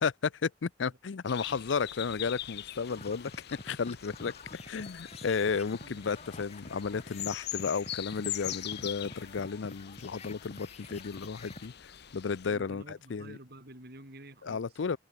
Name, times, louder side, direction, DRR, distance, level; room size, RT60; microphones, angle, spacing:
voice 1, 0.0-3.3 3.6-4.3 4.7-13.4 14.4-15.0, left 5 dB, 80° left, 0.5 m, -33 dB
sound 1, 1.3-12.5, left 13 dB, 60° left, 1.0 m, -43 dB
sound 2, 2.8-11.7, left 2 dB, 35° left, 5.1 m, -48 dB
voice 2, 5.8-6.4 12.4-14.6, right 1 dB, 60° right, 7.7 m, -50 dB
head